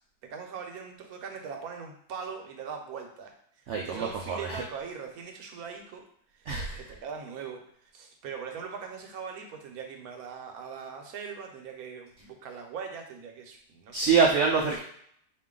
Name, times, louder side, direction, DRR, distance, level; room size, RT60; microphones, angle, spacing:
voice 1, 0.2-3.4 3.8-6.0 6.4-14.1, right 6 dB, 65° right, 3 dB, 1.1 m, -41 dB
voice 2, 3.7-4.6 6.5-6.8 13.9-14.8, right 5 dB, 90° right, -1 dB, 0.6 m, -25 dB
4.4 x 2.6 x 3.7 m, 0.66 s
omnidirectional pair, 1.8 m